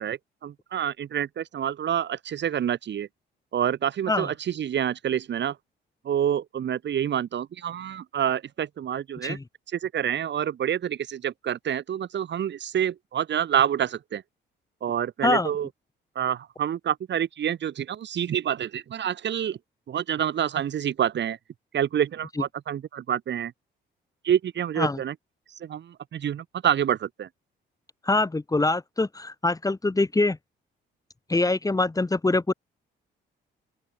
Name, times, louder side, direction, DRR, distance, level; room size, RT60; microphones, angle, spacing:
voice 1, 0.0-3.1 3.5-5.6 6.0-9.4 9.7-14.2 14.8-15.7 16.1-19.6 19.9-21.4 21.7-23.5 24.2-25.1 25.6-27.3, right 9 dB, 65° right, 6.7 m, -27 dB
voice 2, 15.2-15.5 24.8-25.0 28.0-30.4 31.3-32.5, left 2 dB, 15° left, 2.5 m, -24 dB
open air
cardioid pair, 90°, 20 cm